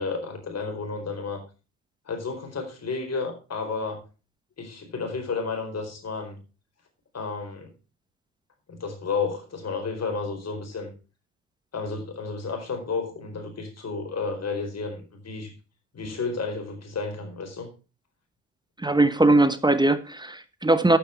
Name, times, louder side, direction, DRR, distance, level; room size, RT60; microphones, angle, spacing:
voice 1, 0.0-1.4 2.1-4.0 4.6-6.4 7.1-7.7 8.7-10.9 11.7-15.5 15.9-17.7, left 4 dB, 35° left, 4 dB, 4.4 m, -32 dB
voice 2, 18.8-21.0, right 2 dB, 10° right, 11 dB, 1.1 m, -20 dB
12.0 x 8.2 x 4.6 m, 0.33 s
figure-of-eight pair, 50°, 46 cm